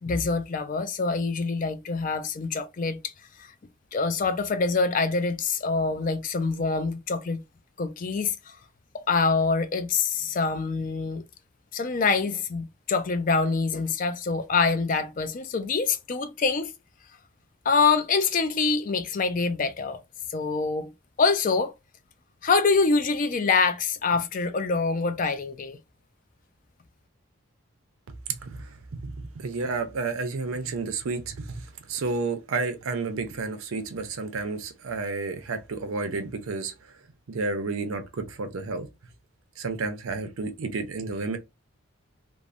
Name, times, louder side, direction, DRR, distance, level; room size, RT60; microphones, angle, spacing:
voice 1, 0.0-3.1 3.4-3.5 3.9-7.4 7.8-8.6 8.9-11.2 11.7-16.7 17.7-20.0 20.3-20.9 21.2-21.7 22.4-25.8, left 4 dB, 40° left, 0.4 m, -25 dB
voice 2, 28.3-28.7 28.9-36.7 37.3-38.9 39.6-41.4, right 3 dB, 80° right, 0.6 m, -31 dB
3.1 x 2.0 x 2.5 m
head